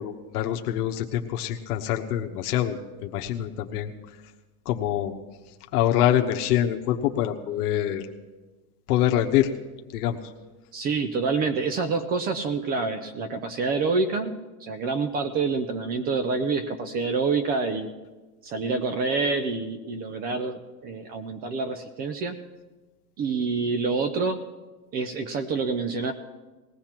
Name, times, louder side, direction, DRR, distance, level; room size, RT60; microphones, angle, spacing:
voice 1, 0.0-3.9 4.7-5.1 5.7-8.0 8.9-9.5 9.9-10.2, left 11 dB, 75° left, 3 dB, 1.1 m, -25 dB
voice 2, 10.7-14.3 14.6-17.9 18.4-22.4 23.2-24.4 24.9-26.1, right 4 dB, 20° right, 10 dB, 0.4 m, -27 dB
20.0 x 16.5 x 2.9 m, 1.2 s
supercardioid pair, 150°, 46 cm